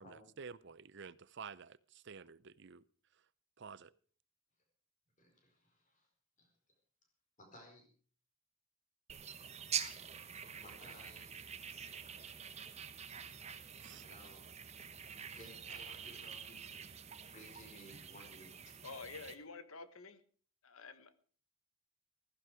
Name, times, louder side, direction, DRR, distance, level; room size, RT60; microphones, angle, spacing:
voice 1, 0.0-2.8 3.6-3.9 13.8-14.0, right 5 dB, 50° right, 19 dB, 0.6 m, -51 dB
voice 2, 5.2-6.1 6.4-6.5 7.4-7.9 10.6-11.4 14.0-14.5 15.3-17.0 17.3-18.7, equal, 35° left, 1 dB, 4.7 m, -58 dB
sound 1, 9.1-19.4, right 7 dB, 30° right, 1.0 m, -46 dB
voice 3, 18.8-20.2 20.6-21.1, left 4 dB, 70° left, 12 dB, 1.4 m, -49 dB
15.5 x 14.5 x 4.9 m, 0.44 s
head